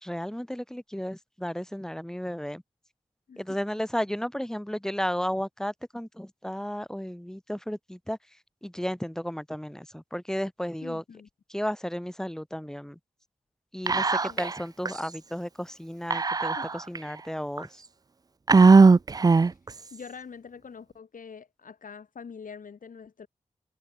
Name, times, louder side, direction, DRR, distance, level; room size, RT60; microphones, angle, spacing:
voice 1, 0.0-2.6 3.4-8.2 8.6-11.0 11.5-12.9 13.7-14.1 14.4-17.7, equal, 5° left, 3.2 m, -33 dB
voice 2, 10.8-11.3 14.3-14.5 16.5-16.7 19.4-19.6 19.9-23.3, left 6 dB, 85° left, 6.5 m, -45 dB
Whispering, 13.9-14.6 14.9-15.0 16.1-17.0 17.6-17.7 18.5-19.7, right 4 dB, 30° right, 0.4 m, -18 dB
cardioid pair, 65°, 13 cm